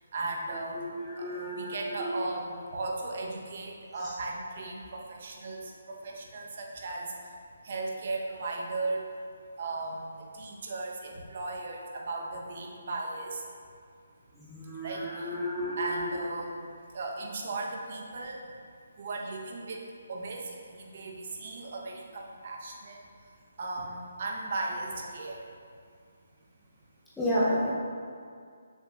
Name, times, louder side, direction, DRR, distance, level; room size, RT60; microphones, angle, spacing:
voice 1, 0.1-0.9 1.2-7.1 7.6-9.0 9.6-13.4 14.8-15.3 15.7-18.4 19.0-19.8 20.1-23.0 23.6-25.4, right 2 dB, 50° right, -1 dB, 1.1 m, -36 dB
voice 2, 0.7-2.2 4.0-4.1 14.4-16.2 27.2-27.7, equal, 5° left, -10 dB, 0.8 m, -32 dB
7.3 x 6.3 x 2.6 m, 2.2 s
figure-of-eight pair, 155°, 0 cm